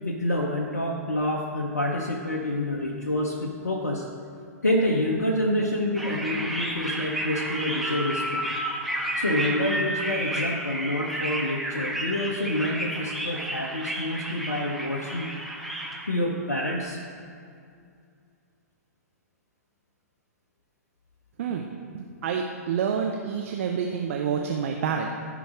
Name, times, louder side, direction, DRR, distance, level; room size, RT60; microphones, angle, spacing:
voice 1, 0.0-4.0 4.6-8.4 9.2-15.3 16.0-17.0, left 1 dB, 85° left, -1 dB, 1.0 m, -27 dB
sound 1, 6.0-16.1, right 1 dB, ahead, 1.2 m, -31 dB
voice 2, 21.9-25.1, right 7 dB, 55° right, 2 dB, 0.7 m, -28 dB
15.0 x 5.1 x 5.0 m, 2.3 s
figure-of-eight pair, 110°, 9 cm